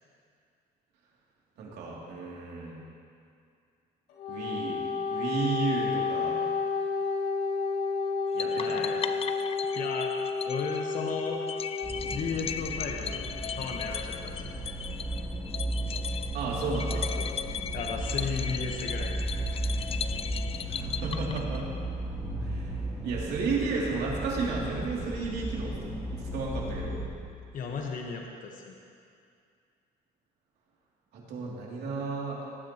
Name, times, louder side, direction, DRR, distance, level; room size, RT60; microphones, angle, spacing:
voice 1, 1.6-2.8 4.3-4.8 5.1-6.3 8.3-8.8 16.3-17.1 20.7-21.6 22.4-22.7 23.0-25.7 26.1-27.0 31.1-32.5, right 4 dB, 75° right, -4 dB, 2.7 m, -33 dB
Wind instrument woodwind instrument, 4.1-12.2, left 4 dB, 85° left, 1.8 m, -31 dB
sound 1, 8.4-21.8, left 7 dB, 35° left, 0.4 m, -38 dB
voice 2, 8.6-9.2 9.7-10.1 10.4-11.4 12.1-13.3 13.6-14.3 14.6-14.7 17.2-17.4 17.7-19.2 27.5-28.7, left 5 dB, 50° left, 1 dB, 1.2 m, -35 dB
sound 2, 11.8-27.1, right 1 dB, ahead, 3.1 m, -35 dB
19.0 x 9.5 x 3.0 m, 2.3 s
cardioid pair, 110°, 17 cm